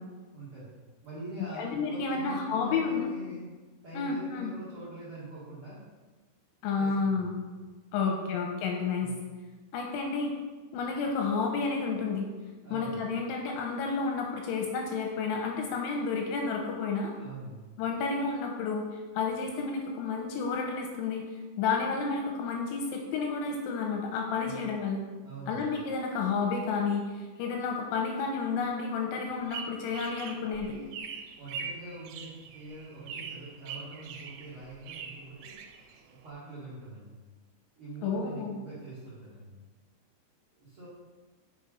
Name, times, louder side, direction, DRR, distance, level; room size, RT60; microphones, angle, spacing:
voice 1, 0.3-0.7 1.0-3.5 3.8-5.8 6.8-7.4 7.9-8.1 9.0-9.2 12.6-13.0 17.1-17.7 24.4-24.6 25.2-25.6 31.4-35.5 36.1-37.1 37.8-39.5 40.6-40.9, right 2 dB, 60° right, -10 dB, 1.3 m, -44 dB
voice 2, 1.5-3.1 3.9-4.5 6.6-7.3 7.9-9.1 9.7-10.3 10.7-12.3 12.7-17.1 17.8-18.8 19.1-21.2 21.6-25.0 25.5-30.8 38.0-38.6, left 4 dB, 85° left, 1 dB, 2.8 m, -31 dB
sound 1, 29.3-36.3, right 6 dB, 85° right, 3.0 m, -43 dB
6.8 x 4.7 x 5.0 m, 1.3 s
omnidirectional pair, 5.8 m